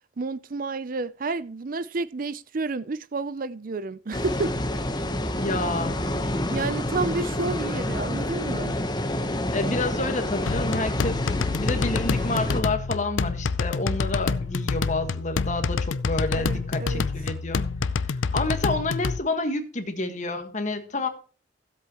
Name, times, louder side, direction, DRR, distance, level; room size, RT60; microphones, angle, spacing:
voice 1, 0.2-4.6 6.3-8.8 16.3-17.1, right 3 dB, 45° right, 0.5 m, -30 dB
sound 1, 4.1-12.6, left 1 dB, 20° left, 1.0 m, -28 dB
voice 2, 5.4-6.0 9.5-11.2 11.5-17.6 18.1-21.1, left 2 dB, 40° left, 1.6 m, -29 dB
sound 2, 10.5-19.2, left 4 dB, 90° left, 0.6 m, -27 dB
15.5 x 8.2 x 3.0 m
head